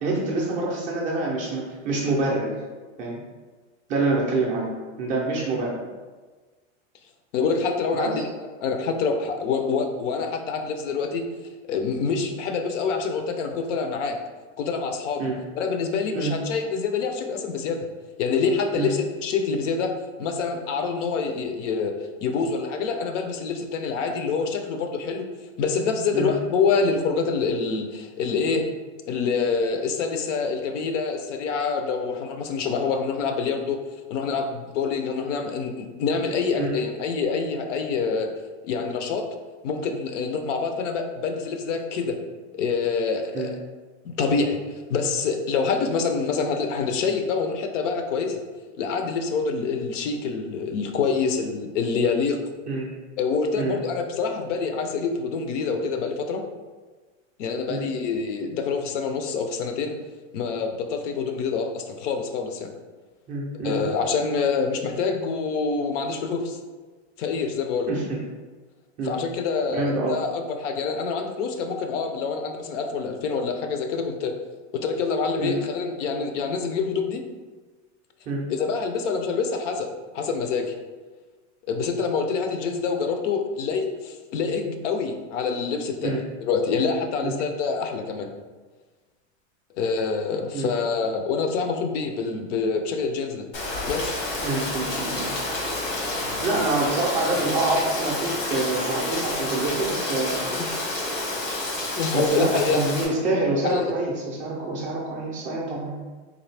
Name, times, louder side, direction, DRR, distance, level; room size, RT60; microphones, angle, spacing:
voice 1, 0.0-2.5 3.0-3.2 3.9-4.7 5.0-5.8 8.0-8.1 15.2-15.4 16.1-16.4 18.7-18.9 26.1-26.3 36.6-36.7 43.3-43.5 52.7-52.9 53.6-53.8 57.7-57.9 63.3-63.8 67.9-68.2 69.0-69.2 69.7-70.2 75.4-75.6 78.3-78.5 86.0-86.2 87.2-87.4 90.5-90.7 94.4-95.4 96.4-100.5 102.1-106.0, right 2 dB, 20° right, -3 dB, 0.4 m, -26 dB
voice 2, 7.3-11.3 11.7-14.2 14.6-15.3 15.6-17.9 18.2-21.9 22.2-25.3 25.6-28.7 29.1-33.8 34.1-38.3 38.6-39.3 39.6-42.2 42.5-43.6 44.0-48.4 48.8-52.4 53.2-56.4 57.4-59.9 60.3-62.7 63.5-66.6 67.2-67.9 69.0-74.4 74.7-77.2 78.5-80.8 81.7-88.3 89.7-93.5 93.9-94.1 100.5-100.7 102.0-102.9 103.6-103.9, left 5 dB, 75° left, 5 dB, 0.6 m, -26 dB
Rain, 93.5-103.0, left 2 dB, 90° left, 1.3 m, -29 dB
3.9 x 2.6 x 3.2 m, 1.4 s
supercardioid pair, 150°, 37 cm